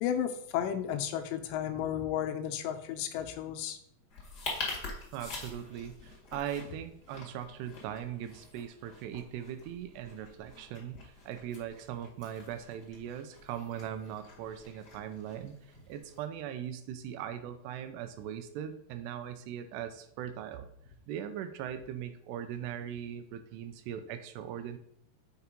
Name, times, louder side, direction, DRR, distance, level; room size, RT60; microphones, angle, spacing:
voice 1, 0.0-3.8, left 9 dB, 85° left, 7 dB, 2.9 m, -33 dB
sound 1, 4.1-16.2, left 3 dB, 45° left, 1.2 m, -45 dB
voice 2, 5.1-15.5 15.9-20.7 21.1-24.8, right 9 dB, 85° right, 9 dB, 2.6 m, -40 dB
6.7 x 4.6 x 5.1 m, 0.71 s
omnidirectional pair, 5.0 m